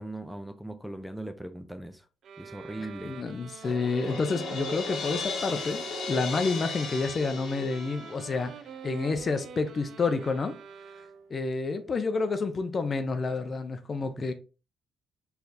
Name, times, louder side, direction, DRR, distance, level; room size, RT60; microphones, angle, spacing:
voice 1, 0.0-2.1 2.4-3.2, right 1 dB, ahead, 0.6 m, -39 dB
sound 1, 2.2-11.4, right 6 dB, 65° right, 0.4 m, -44 dB
voice 2, 2.8-8.5 8.8-10.6 11.3-14.3, left 4 dB, 40° left, 0.6 m, -29 dB
Crash cymbal, 3.6-8.6, left 4 dB, 75° left, 1.0 m, -36 dB
4.2 x 3.4 x 2.9 m
cardioid pair, 90°, 0 cm